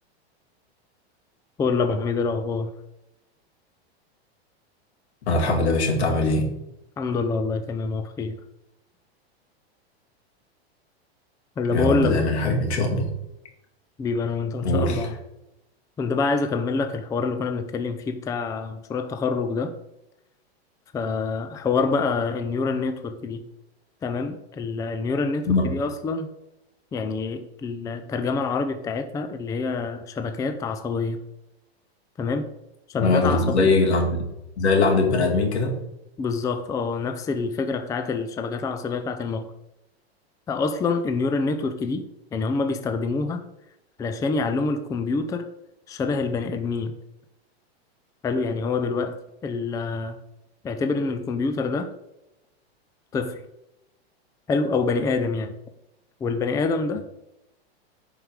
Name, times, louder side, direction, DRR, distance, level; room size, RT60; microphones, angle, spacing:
voice 1, 1.6-2.7 7.0-8.4 11.6-12.3 14.0-15.1 16.0-19.7 20.9-23.4 24.0-26.3 26.9-31.2 32.2-32.5 32.9-33.7 36.2-39.5 40.5-42.0 42.3-43.4 44.0-45.5 45.9-46.9 48.2-50.2 50.6-51.9 53.1-53.4 54.5-55.6 56.2-57.2, left 4 dB, 10° left, 8 dB, 0.5 m, -26 dB
voice 2, 5.3-6.5 11.7-13.1 14.6-15.1 25.5-25.8 33.0-34.1 34.6-35.7, left 2 dB, 85° left, 1 dB, 2.9 m, -21 dB
9.9 x 4.9 x 5.1 m, 0.90 s
supercardioid pair, 135°, 32 cm